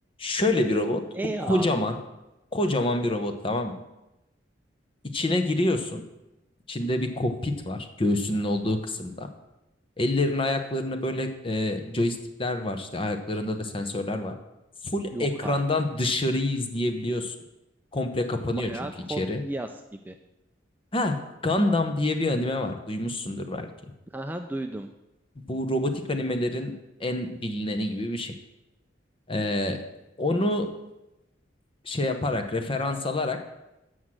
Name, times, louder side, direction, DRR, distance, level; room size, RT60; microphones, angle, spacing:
voice 1, 0.2-1.1 1.4-2.0 2.5-3.7 5.0-6.0 6.7-9.3 10.0-14.3 14.8-17.3 17.9-18.7 19.2-19.4 20.9-23.7 25.5-26.7 27.0-28.3 29.3-29.9 30.2-30.8 31.8-33.4, left 1 dB, 30° left, 7 dB, 0.9 m, -27 dB
voice 2, 1.1-1.9 15.1-15.6 18.5-20.2 24.1-24.9, right 2 dB, 10° right, 5 dB, 0.4 m, -34 dB
8.0 x 6.3 x 7.3 m, 0.95 s
head